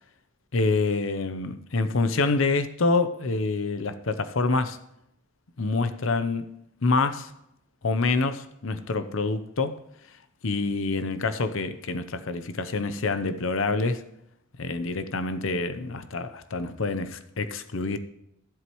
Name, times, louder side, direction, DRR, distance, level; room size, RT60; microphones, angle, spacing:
voice 1, 0.5-4.8 5.6-6.5 6.8-7.3 7.8-9.8 10.4-14.0 14.6-18.0, left 3 dB, 70° left, 0.7 m, -26 dB
12.5 x 11.0 x 3.1 m
head